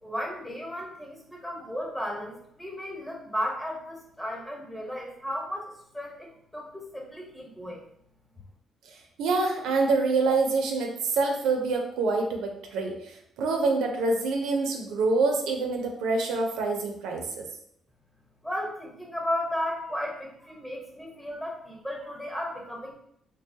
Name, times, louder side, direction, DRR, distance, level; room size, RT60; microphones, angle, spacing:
voice 1, 0.0-7.9 18.4-23.0, equal, 10° left, -1 dB, 1.0 m, -34 dB
voice 2, 9.2-17.4, right 3 dB, 90° right, 2 dB, 0.5 m, -26 dB
3.2 x 2.2 x 2.7 m, 0.72 s
cardioid pair, 90°, 0 cm